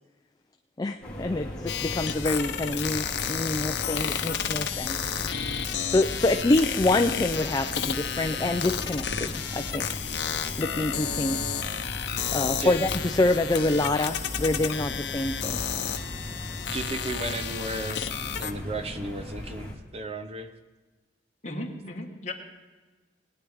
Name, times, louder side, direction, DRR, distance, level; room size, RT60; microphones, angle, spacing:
voice 1, 0.8-5.0 5.9-9.9 10.6-11.5 12.3-15.6, left 2 dB, 20° left, 7 dB, 0.4 m, -26 dB
sound 1, 1.0-19.7, left 1 dB, 5° left, 2.8 m, -38 dB
sound 2, 1.7-18.5, left 8 dB, 80° left, 0.8 m, -32 dB
voice 2, 16.7-18.0 18.4-20.5, right 2 dB, 35° right, 8 dB, 0.7 m, -34 dB
voice 3, 21.4-22.3, left 1 dB, 40° left, 0 dB, 1.8 m, -35 dB
19.5 x 9.8 x 3.5 m, 1.3 s
head